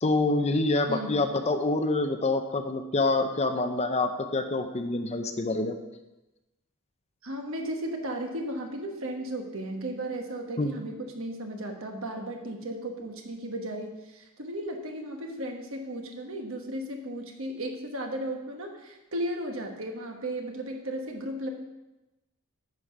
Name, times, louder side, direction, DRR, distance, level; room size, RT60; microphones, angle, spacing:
voice 1, 0.0-5.8 10.6-10.7, left 2 dB, 30° left, 7 dB, 0.6 m, -26 dB
voice 2, 0.9-1.3 7.2-21.5, right 1 dB, 60° right, 3 dB, 1.3 m, -35 dB
9.4 x 5.0 x 6.1 m, 1.0 s
head